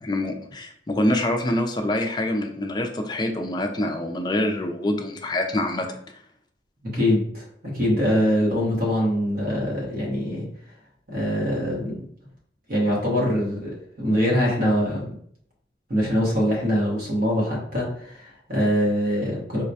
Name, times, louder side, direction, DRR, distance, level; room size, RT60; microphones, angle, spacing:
voice 1, 0.0-5.9, left 1 dB, 25° left, 4 dB, 0.4 m, -25 dB
voice 2, 6.8-7.4 7.7-10.5 11.1-12.0 12.7-15.1 15.9-19.6, equal, 55° right, -3 dB, 1.2 m, -23 dB
3.9 x 2.1 x 2.7 m, 0.65 s
head